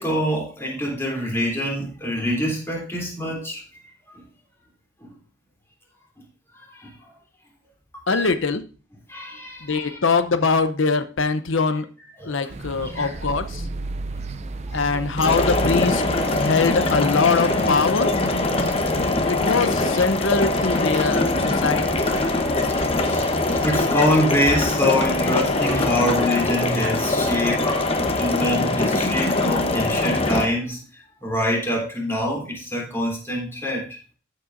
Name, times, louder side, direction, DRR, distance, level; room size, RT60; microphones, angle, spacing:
voice 1, 0.0-3.6 5.0-5.1 6.5-7.0 8.1-8.3 9.1-10.0 12.2-12.5 12.8-13.1 14.7-14.8 19.2-19.3 22.8-34.0, equal, 10° left, 3.2 m, -25 dB
voice 2, 8.1-8.6 9.6-11.9 12.2-13.7 14.7-16.0 16.4-18.1 19.3-22.0, left 4 dB, 75° left, 0.7 m, -22 dB
sound 1, 12.5-24.6, right 2 dB, 35° right, 0.5 m, -35 dB
sound 2, 15.2-30.5, left 2 dB, 30° left, 0.9 m, -22 dB
13.5 x 7.5 x 2.6 m
head